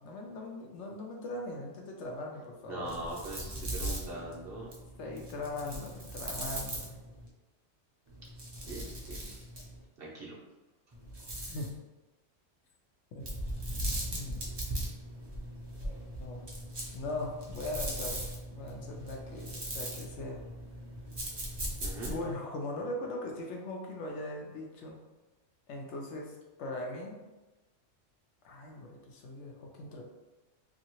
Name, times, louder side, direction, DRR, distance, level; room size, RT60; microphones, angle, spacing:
voice 1, 0.0-3.0 5.0-7.0 11.5-11.7 13.1-13.2 14.1-14.5 15.8-15.9 16.2-16.4 16.9-18.2 18.5-20.4 22.1-25.0 25.7-27.2 28.4-30.0, left 2 dB, 70° left, 0 dB, 0.8 m, -40 dB
voice 2, 2.7-4.7 8.7-9.4 10.0-10.4 21.8-22.2, right 2 dB, 55° right, -4 dB, 0.7 m, -41 dB
sound 1, 2.8-7.3 8.1-9.8 10.9-11.7 13.2-22.4, right 1 dB, 35° right, 0.4 m, -39 dB
2.7 x 2.6 x 2.9 m, 1.1 s
omnidirectional pair, 1.3 m